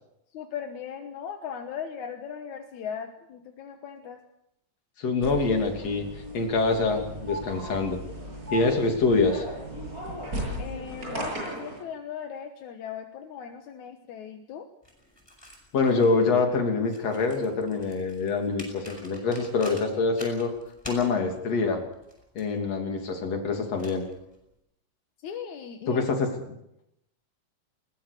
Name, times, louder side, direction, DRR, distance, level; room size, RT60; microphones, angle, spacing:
voice 1, 0.3-4.2 10.6-14.7 25.2-26.0, left 7 dB, 80° left, 5 dB, 2.7 m, -38 dB
voice 2, 5.0-6.1 6.3-8.0 8.5-9.5 15.7-20.5 20.9-21.8 22.4-24.1 25.9-26.3, left 4 dB, 60° left, 3 dB, 4.0 m, -25 dB
sound 1, 5.2-11.8, right 1 dB, 25° right, 8.2 m, -36 dB
sound 2, 14.8-24.6, equal, 10° left, 5.5 m, -48 dB
21.0 x 20.0 x 6.7 m, 0.82 s
omnidirectional pair, 3.3 m